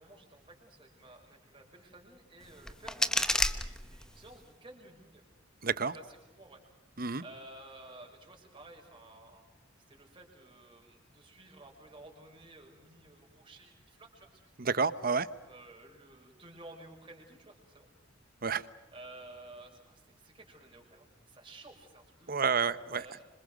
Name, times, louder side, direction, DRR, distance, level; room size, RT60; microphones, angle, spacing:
voice 1, 0.0-5.2 5.9-6.6 7.2-9.4 9.9-14.7 15.5-17.9 18.9-22.4 22.9-23.2, right 2 dB, 25° right, 5.8 m, -53 dB
sound 1, 2.4-4.4, left 1 dB, 5° left, 1.0 m, -32 dB
voice 2, 5.6-5.9 7.0-7.2 14.6-15.3 18.4-18.6 22.3-23.1, right 5 dB, 45° right, 1.0 m, -29 dB
26.5 x 26.0 x 6.5 m
head